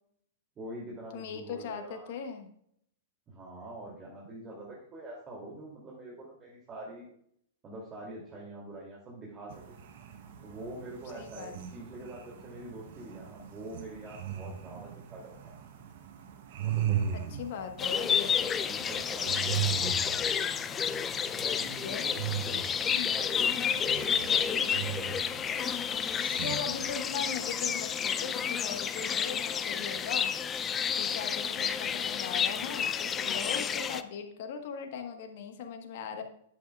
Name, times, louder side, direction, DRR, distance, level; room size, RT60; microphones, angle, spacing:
voice 1, 0.6-2.1 3.3-7.1 7.6-9.8 10.4-15.5 16.6-17.4 18.6-20.2 21.4-22.6 23.1-25.2, right 1 dB, 25° right, -4 dB, 2.8 m, -45 dB
voice 2, 1.1-2.5 11.1-11.5 17.1-18.6 21.6-22.0 22.9-23.1 26.4-30.3 30.9-36.2, left 6 dB, 55° left, 5 dB, 1.3 m, -39 dB
sound 1, 9.5-27.2, right 10 dB, 60° right, 1.0 m, -39 dB
sound 2, 17.8-34.0, left 7 dB, 25° left, 0.5 m, -30 dB
10.5 x 8.3 x 2.4 m, 0.69 s
hypercardioid pair, 105°, 0 cm